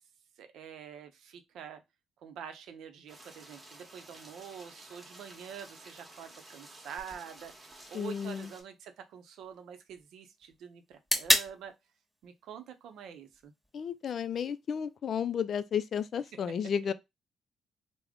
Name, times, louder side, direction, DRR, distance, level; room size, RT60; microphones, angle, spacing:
voice 1, 0.4-1.8 2.2-11.7 12.2-13.5, right 8 dB, 80° right, 0.6 m, -46 dB
sound 1, 3.1-8.6, right 2 dB, 25° right, 1.1 m, -52 dB
sound 2, 7.0-15.0, equal, 5° right, 1.2 m, -36 dB
voice 2, 7.9-8.5 13.7-16.9, left 7 dB, 55° left, 0.3 m, -32 dB
3.5 x 2.1 x 3.5 m
cardioid pair, 90°, 0 cm